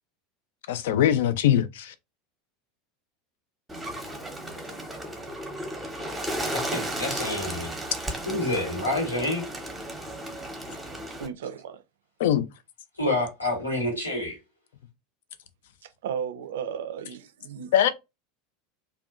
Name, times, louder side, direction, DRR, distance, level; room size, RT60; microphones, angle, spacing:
voice 1, 0.7-1.9 12.2-12.4 17.7-17.9, left 10 dB, 60° left, 0.3 m, -21 dB
Bird, 3.7-11.3, right 1 dB, 10° right, 0.8 m, -34 dB
voice 2, 6.5-7.7 8.2-9.4 13.0-14.4, left 1 dB, 85° left, 1.1 m, -28 dB
voice 3, 11.2-11.8 15.8-17.9, right 8 dB, 65° right, 0.3 m, -35 dB
2.5 x 2.2 x 2.4 m
figure-of-eight pair, 80°, 0 cm